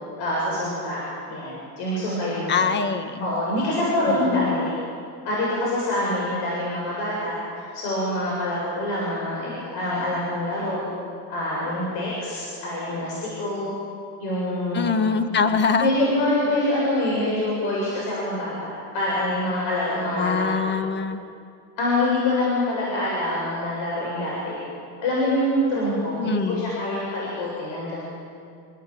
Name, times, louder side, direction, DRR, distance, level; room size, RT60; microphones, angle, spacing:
voice 1, 0.2-1.0 1.3-2.6 3.2-4.7 5.2-7.4 7.7-10.8 11.3-13.7 14.2-15.0 15.8-20.7 21.8-24.6 25.0-28.0, left 1 dB, 60° left, -5 dB, 7.8 m, -25 dB
voice 2, 2.5-3.3 4.1-4.7 14.7-15.9 20.1-21.2 26.2-26.7, left 5 dB, 25° left, 9 dB, 1.5 m, -24 dB
27.5 x 17.5 x 9.3 m, 2.3 s
cardioid pair, 155°, 44 cm